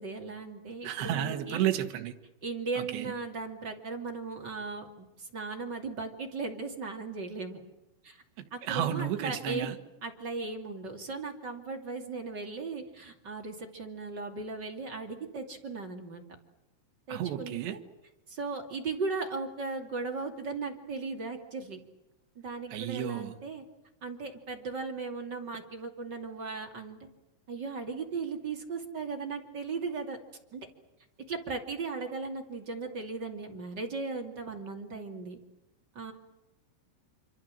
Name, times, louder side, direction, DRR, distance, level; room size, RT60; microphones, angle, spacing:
voice 1, 0.0-1.7 2.4-7.6 8.0-8.2 8.5-9.7 10.0-16.2 17.1-17.8 18.3-21.8 22.3-23.6 24.0-27.0 27.5-30.2 30.5-30.7 31.3-35.4 35.9-36.1, right 4 dB, 30° right, 2.2 m, -37 dB
voice 2, 0.8-2.1 2.8-3.1 8.4-9.8 17.1-17.8 22.7-23.3, right 11 dB, 70° right, 3.6 m, -32 dB
26.5 x 26.0 x 7.6 m
omnidirectional pair, 5.6 m